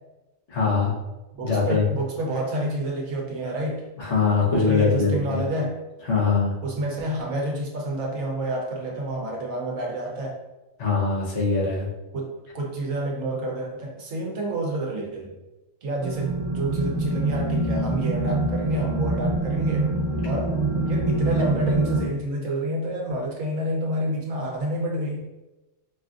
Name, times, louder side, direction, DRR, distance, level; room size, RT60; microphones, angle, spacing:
voice 1, 0.5-0.9 1.4-1.8 4.0-5.4 6.1-6.5 10.8-11.9, left 4 dB, 60° left, -4 dB, 1.2 m, -22 dB
voice 2, 1.3-3.8 4.5-5.8 6.6-10.4 12.1-15.3 15.8-19.9 20.2-25.3, right 1 dB, 80° right, 0 dB, 1.2 m, -29 dB
sound 1, 16.0-22.0, right 2 dB, 50° right, 1.1 m, -25 dB
4.8 x 2.5 x 2.4 m, 1.0 s
omnidirectional pair, 1.4 m